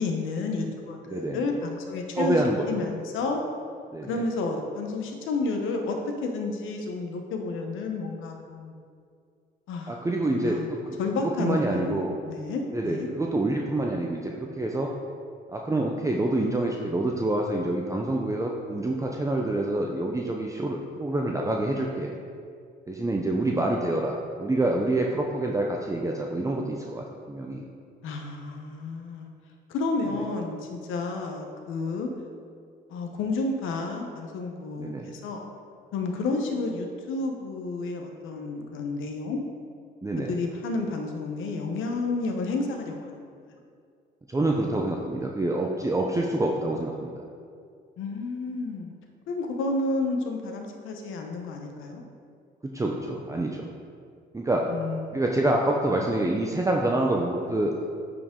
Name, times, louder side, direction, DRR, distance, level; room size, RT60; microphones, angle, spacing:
voice 1, 0.0-3.4 4.1-8.8 9.7-10.0 10.3-10.7 11.0-13.1 28.0-29.3 29.7-32.1 32.9-35.5 35.9-39.4 40.3-43.2 48.0-48.9 49.3-52.0 54.7-55.3, left 3 dB, 90° left, 3 dB, 1.0 m, -31 dB
voice 2, 1.1-1.4 2.2-2.7 3.9-4.2 9.9-11.0 11.2-12.2 12.7-14.9 15.5-22.1 22.9-27.7 34.8-35.1 40.0-40.3 44.3-47.2 52.6-53.7 54.3-54.7 55.1-57.7, right 2 dB, 15° right, 0 dB, 0.6 m, -27 dB
9.5 x 5.0 x 3.8 m, 2.3 s
cardioid pair, 90°, 20 cm